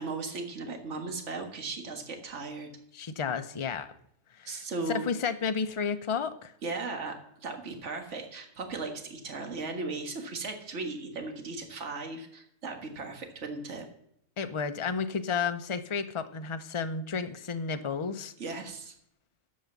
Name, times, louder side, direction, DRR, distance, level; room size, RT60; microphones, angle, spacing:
voice 1, 0.0-2.7 4.5-5.0 6.6-7.2 7.4-13.9 18.4-18.9, right 3 dB, 60° right, 4 dB, 1.9 m, -37 dB
voice 2, 2.9-3.9 4.4-4.6 4.9-6.5 14.4-18.3, left 6 dB, 30° left, 9 dB, 0.6 m, -32 dB
10.5 x 7.6 x 8.3 m, 0.72 s
omnidirectional pair, 1.4 m